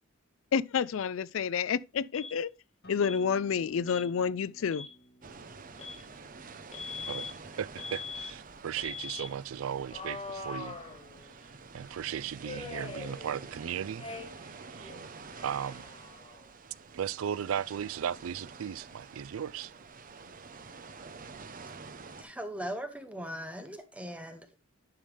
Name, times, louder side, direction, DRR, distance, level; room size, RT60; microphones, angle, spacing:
voice 1, 0.5-2.5 2.9-4.9, left 6 dB, 70° left, 0.4 m, -29 dB
Alarm, 2.1-2.4 3.0-3.2 3.9-4.1 4.6-4.9 5.8-6.0 6.7-7.3 7.8-8.3 8.8-9.3 9.9-11.4 12.4-13.6 14.0-14.5 14.8-16.5, left 4 dB, 30° left, 1.5 m, -42 dB
Acoustic guitar, 2.8-8.0, right 1 dB, 55° left, 2.1 m, -55 dB
sound 1, 5.2-22.2, right 4 dB, 40° right, 0.8 m, -48 dB
voice 2, 7.1-10.8 11.7-14.1 14.8-14.9 15.4-15.8 16.9-19.7, right 8 dB, 80° right, 0.4 m, -36 dB
voice 3, 22.2-24.6, equal, 5° right, 0.8 m, -39 dB
10.5 x 5.5 x 3.3 m
head